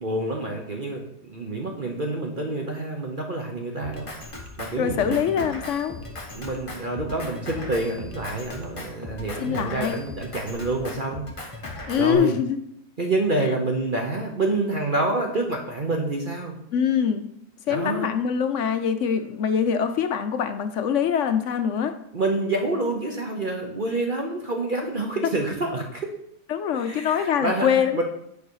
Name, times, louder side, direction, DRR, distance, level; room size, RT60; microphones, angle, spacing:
voice 1, 0.0-4.1 4.6-5.5 6.3-11.3 12.0-12.4 13.0-16.5 17.7-18.1 22.1-26.1 26.7-28.0, right 2 dB, 40° right, 1 dB, 0.9 m, -27 dB
Drum kit, 3.8-12.1, left 2 dB, 20° left, 1.2 m, -38 dB
voice 2, 4.8-6.0 9.4-10.0 11.9-12.6 16.7-17.3 17.7-22.0 26.5-28.0, left 8 dB, 65° left, 9 dB, 0.8 m, -24 dB
9.4 x 4.7 x 4.7 m, 0.74 s
omnidirectional pair, 1.7 m